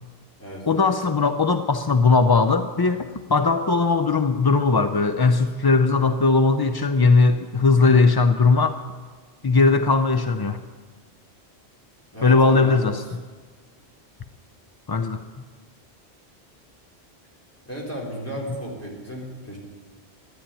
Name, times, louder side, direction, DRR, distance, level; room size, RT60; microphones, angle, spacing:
voice 1, 0.7-8.8 9.4-10.6 12.2-13.0 14.9-15.2, left 4 dB, 35° left, 8 dB, 0.3 m, -19 dB
voice 2, 12.1-12.8 17.6-19.6, right 1 dB, 15° left, -3 dB, 3.9 m, -34 dB
12.5 x 10.0 x 9.0 m, 1.4 s
omnidirectional pair, 1.1 m